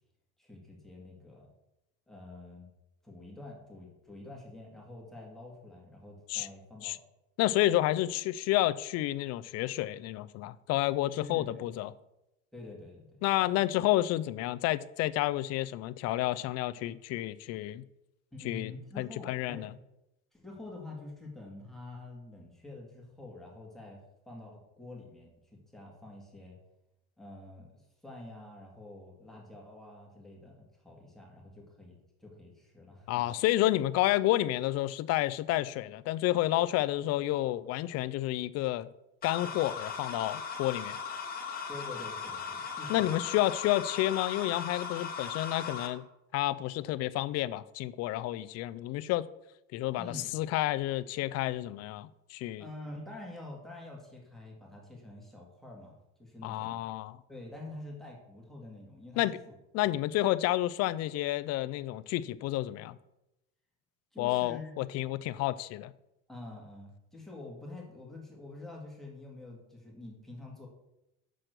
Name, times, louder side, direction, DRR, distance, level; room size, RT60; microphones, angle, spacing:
voice 1, 0.4-1.5 2.1-2.7 3.0-7.0 11.2-11.7 12.5-13.2 18.3-19.7 20.3-24.0 24.3-26.6 27.2-33.2 41.7-43.1 50.0-50.3 52.6-56.8 57.3-59.3 64.1-64.8 66.3-70.7, left 2 dB, ahead, 2.1 m, -47 dB
voice 2, 7.4-11.9 13.2-17.8 18.4-19.7 33.1-38.9 39.2-41.0 42.9-46.0 46.3-49.3 49.7-52.6 56.4-57.2 59.2-59.4 59.7-63.0 64.2-65.9, left 15 dB, 55° left, 0.5 m, -30 dB
sound 1, 39.2-45.9, left 6 dB, 30° left, 1.3 m, -38 dB
6.2 x 5.8 x 6.6 m
cardioid pair, 140°, 31 cm